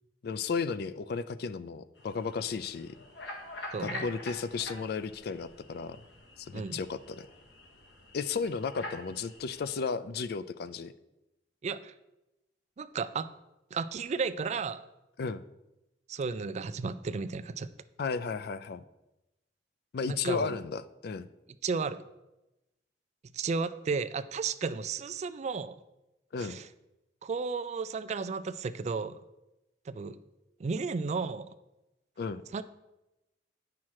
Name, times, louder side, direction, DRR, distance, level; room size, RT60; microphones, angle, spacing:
voice 1, 0.2-2.9 3.8-6.0 6.4-7.3 8.1-10.9 15.2-15.4 18.0-18.8 19.9-21.3 26.3-26.6 32.2-32.4, left 5 dB, 60° left, 14 dB, 0.4 m, -34 dB
sound 1, 1.9-9.8, left 2 dB, 85° left, 1.5 m, -46 dB
voice 2, 3.7-4.1 6.5-6.8 11.6-11.9 12.8-13.3 13.7-14.8 16.1-17.7 20.1-20.6 21.6-22.0 23.3-25.8 26.4-26.7 27.2-29.2 29.9-30.2 30.6-31.5 32.5-32.6, right 4 dB, 40° right, 13 dB, 0.3 m, -33 dB
8.6 x 5.8 x 4.7 m, 0.95 s
head